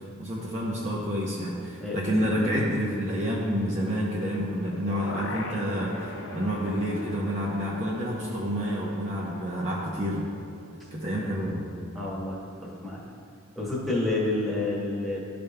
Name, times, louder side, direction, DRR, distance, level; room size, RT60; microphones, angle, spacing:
voice 1, 0.2-10.2 10.9-11.7, equal, 35° right, -5 dB, 0.7 m, -29 dB
sound 1, 3.0-12.1, right 2 dB, 75° right, 0.4 m, -46 dB
sound 2, 4.3-10.3 10.6-10.7, left 3 dB, 70° left, 0.5 m, -42 dB
voice 2, 11.9-13.0 13.5-15.2, left 2 dB, ahead, -7 dB, 1.3 m, -29 dB
12.5 x 5.2 x 2.2 m, 2.5 s
head